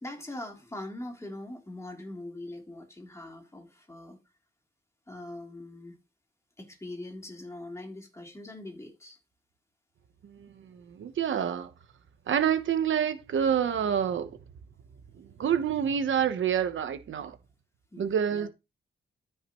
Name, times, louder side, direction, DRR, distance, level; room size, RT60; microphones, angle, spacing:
voice 1, 0.0-4.2 5.1-6.0 6.6-9.2 17.9-18.5, left 1 dB, 15° left, 3.3 m, -42 dB
voice 2, 10.2-11.7 12.3-14.3 15.2-17.4 18.0-18.5, right 8 dB, 75° right, 1.0 m, -28 dB
13.5 x 5.8 x 3.1 m
wide cardioid pair, 125°, 20 cm